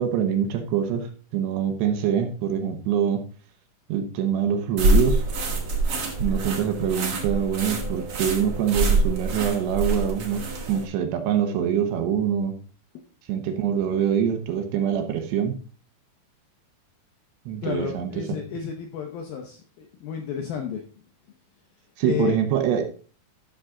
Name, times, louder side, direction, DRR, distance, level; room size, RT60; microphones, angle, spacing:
voice 1, 0.0-3.2 3.9-5.2 6.2-12.5 13.3-15.6 17.5-18.1 22.0-22.9, right 8 dB, 75° right, 6 dB, 3.0 m, -24 dB
sound 1, 4.8-10.8, right 2 dB, 50° right, 1.8 m, -25 dB
voice 2, 17.6-20.8 22.0-22.4, left 8 dB, 75° left, 3 dB, 2.2 m, -31 dB
12.5 x 6.3 x 3.8 m, 0.40 s
omnidirectional pair, 5.4 m